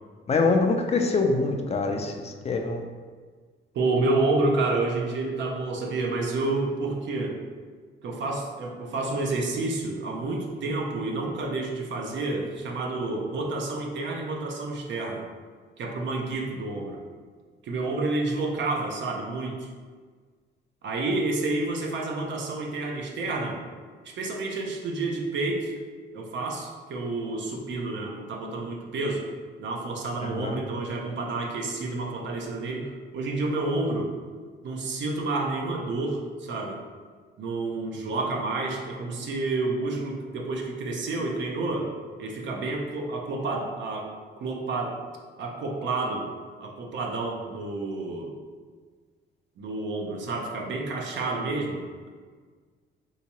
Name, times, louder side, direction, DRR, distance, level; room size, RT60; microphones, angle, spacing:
voice 1, 0.3-2.8 30.4-30.5, left 3 dB, 30° left, 3 dB, 0.4 m, -24 dB
voice 2, 3.7-7.4 8.0-15.2 15.8-17.0 17.6-19.7 20.8-23.6 24.0-25.7 26.1-29.3 29.6-34.1 34.6-36.8 37.4-41.9 42.2-44.1 44.4-45.0 45.4-46.3 46.6-48.3 49.6-51.8, right 2 dB, 65° right, 0 dB, 0.7 m, -29 dB
3.5 x 2.8 x 2.9 m, 1.5 s
cardioid pair, 90°, 20 cm